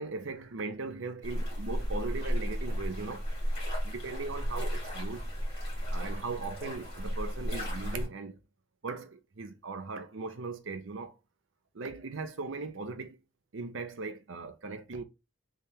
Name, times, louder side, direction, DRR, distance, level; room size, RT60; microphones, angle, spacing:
voice 1, 0.0-3.2 3.8-5.2 5.9-8.4 8.8-11.1 11.7-13.2 13.5-15.0, right 3 dB, 65° right, 0.6 m, -38 dB
sound 1, 1.2-8.1, equal, 30° left, 2.3 m, -34 dB
3.5 x 3.3 x 2.8 m
head